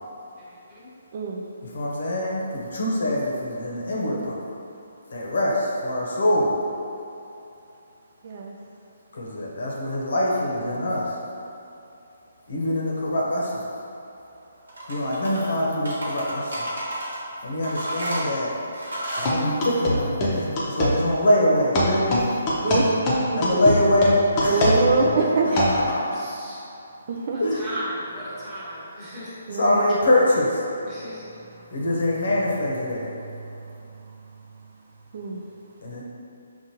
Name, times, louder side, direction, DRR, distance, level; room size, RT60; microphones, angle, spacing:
voice 1, 0.4-0.9 24.5-24.8 25.5-25.7 26.1-26.6 27.3-29.3 30.8-31.4, right 1 dB, 20° right, -10 dB, 1.2 m, -37 dB
voice 2, 1.1-1.4 8.2-8.5 22.6-23.0 23.3-23.6 24.4-25.5 27.1-27.4 29.5-29.9 35.1-35.4, right 4 dB, 45° right, -1 dB, 0.4 m, -24 dB
voice 3, 1.6-4.4 5.1-6.5 9.1-11.1 12.5-13.6 14.9-16.7 17.4-18.6 19.2-22.2 22.7-22.8 23.3-25.1 25.4-26.2 27.4-27.7 29.5-30.6 31.7-33.1 35.8-36.0, left 1 dB, 70° left, -4 dB, 0.9 m, -24 dB
sound 1, 14.7-15.5 15.8-17.2 17.6-19.4, right 1 dB, 85° right, 1.2 m, -31 dB
sound 2, 19.2-21.0 21.7-25.8, left 1 dB, 25° left, 0.7 m, -23 dB
5.3 x 2.5 x 2.9 m, 2.7 s
hypercardioid pair, 150°, 0 cm